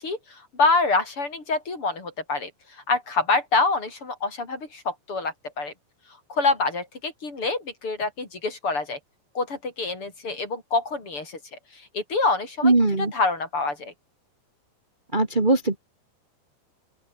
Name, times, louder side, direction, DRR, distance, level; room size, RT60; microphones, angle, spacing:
voice 1, 0.0-2.5 2.9-5.7 6.3-9.0 9.3-11.4 11.9-12.7 13.0-13.9, left 3 dB, 30° left, 5.8 m, -26 dB
voice 2, 12.6-13.1 15.1-15.8, right 2 dB, 80° right, 0.4 m, -20 dB
open air
omnidirectional pair, 5.2 m